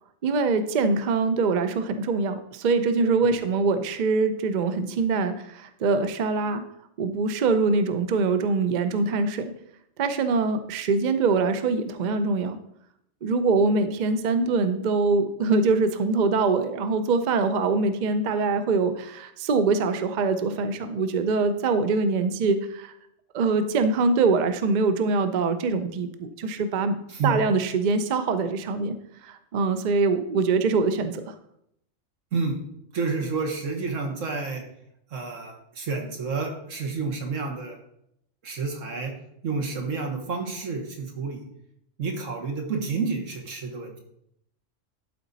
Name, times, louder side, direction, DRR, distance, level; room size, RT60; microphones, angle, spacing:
voice 1, 0.2-6.6 7.0-9.5 10.0-12.6 13.2-22.9 23.3-28.9 29.2-31.3, right 4 dB, 50° right, 9 dB, 0.6 m, -24 dB
voice 2, 32.9-34.6 35.1-37.8 38.4-39.1 39.4-41.4 42.0-44.0, right 4 dB, 85° right, 3 dB, 1.6 m, -29 dB
12.0 x 4.1 x 4.0 m, 0.76 s
omnidirectional pair, 1.3 m